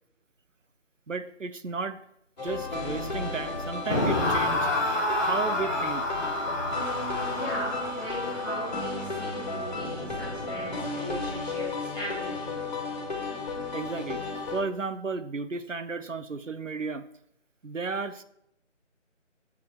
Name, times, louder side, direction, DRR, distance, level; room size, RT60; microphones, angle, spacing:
voice 1, 1.1-2.0 2.4-4.7 5.2-6.2 13.7-14.2 14.5-17.0 17.6-18.2, right 4 dB, 80° right, 12 dB, 0.9 m, -33 dB
sound 1, 2.4-14.6, left 2 dB, 35° left, 2.3 m, -34 dB
sound 2, 3.9-11.0, left 2 dB, 15° left, 1.3 m, -30 dB
voice 2, 7.4-12.5, left 1 dB, ahead, -14 dB, 1.0 m, -38 dB
8.5 x 7.8 x 4.6 m, 0.75 s
figure-of-eight pair, 160°, 37 cm